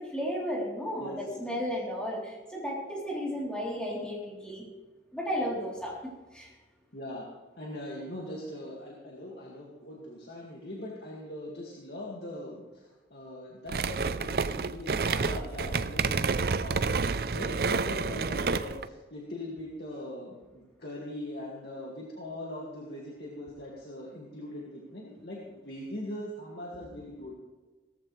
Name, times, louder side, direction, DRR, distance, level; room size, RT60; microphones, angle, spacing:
voice 1, 0.0-4.6 5.1-6.5, equal, 5° left, -4 dB, 3.5 m, -34 dB
voice 2, 1.0-1.6 6.9-7.2 7.6-27.3, left 1 dB, 65° left, -3 dB, 2.2 m, -41 dB
sound 1, 13.7-18.9, right 4 dB, 55° right, 0.5 m, -29 dB
17.5 x 14.0 x 3.3 m, 1.2 s
head